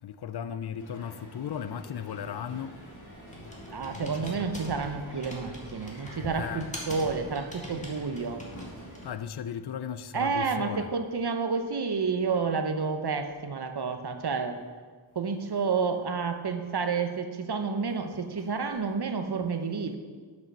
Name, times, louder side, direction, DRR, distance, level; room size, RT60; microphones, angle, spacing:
voice 1, 0.0-2.8 3.9-4.3 6.3-6.7 9.0-10.9, left 8 dB, 55° left, 0.5 m, -36 dB
Crowd, 0.8-9.1, equal, 40° left, 2.0 m, -47 dB
Computer keyboard, 2.2-9.2, left 1 dB, 15° left, 1.9 m, -44 dB
voice 2, 3.7-8.4 10.1-14.6 15.1-19.9, right 5 dB, 55° right, 0.9 m, -30 dB
7.6 x 6.0 x 6.2 m
wide cardioid pair, 70°, 48 cm